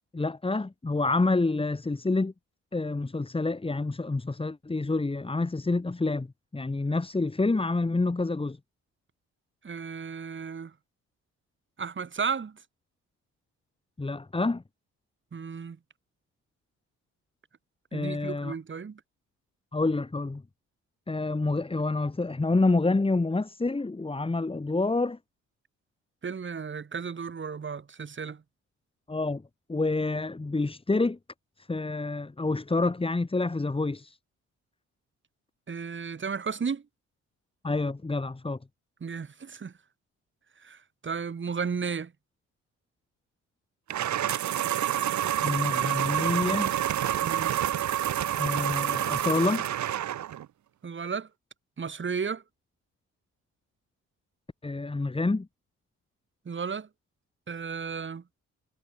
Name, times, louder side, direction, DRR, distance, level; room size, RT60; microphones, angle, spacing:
voice 1, 0.1-2.3 2.7-6.3 6.5-8.6 14.0-14.6 17.9-18.5 19.7-20.4 21.1-25.2 29.1-29.4 29.7-31.2 31.6-34.2 37.6-38.6 45.4-46.7 48.4-49.7 54.6-55.5, left 3 dB, 20° left, 3.9 m, -28 dB
voice 2, 9.6-10.7 11.8-12.6 15.3-15.8 17.9-19.0 26.2-28.4 35.7-36.8 39.0-39.7 40.6-42.1 47.2-47.6 50.8-51.3 51.8-52.4 56.4-56.9 57.5-58.2, right 6 dB, 40° right, 8.0 m, -34 dB
sound 1, 43.9-50.4, right 11 dB, 70° right, 3.0 m, -28 dB
cardioid pair, 90°, 30 cm